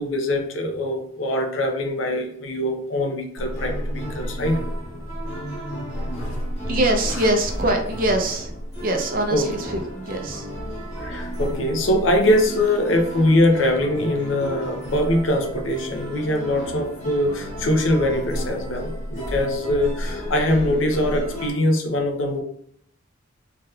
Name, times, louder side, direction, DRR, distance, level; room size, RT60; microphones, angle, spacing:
voice 1, 0.0-4.6 6.2-6.4 7.1-7.2 9.3-9.5 11.0-22.4, left 1 dB, 85° left, 4 dB, 0.6 m, -22 dB
sound 1, 3.4-21.5, equal, 35° left, 1.0 m, -32 dB
voice 2, 6.7-8.5 8.8-10.5, right 1 dB, 50° right, 3 dB, 0.6 m, -23 dB
3.3 x 2.9 x 2.3 m, 0.68 s
head